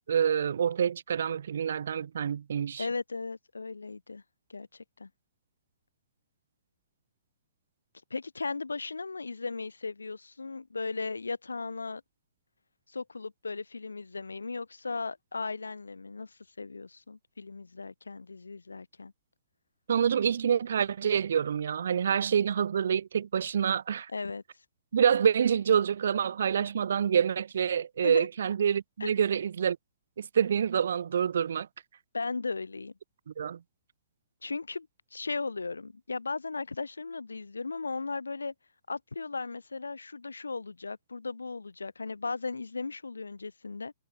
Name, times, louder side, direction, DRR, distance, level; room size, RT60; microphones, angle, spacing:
voice 1, 0.1-2.9 19.9-24.1 24.9-29.8 30.2-31.7 33.4-33.6, right 8 dB, 65° right, 1.3 m, -27 dB
voice 2, 2.8-4.2 4.5-5.1 8.1-12.0 12.9-19.1 24.1-24.4 28.0-28.3 29.0-29.1 32.1-32.9 34.4-38.5 38.9-43.9, left 4 dB, 85° left, 5.7 m, -36 dB
hypercardioid pair, 125°, 0 cm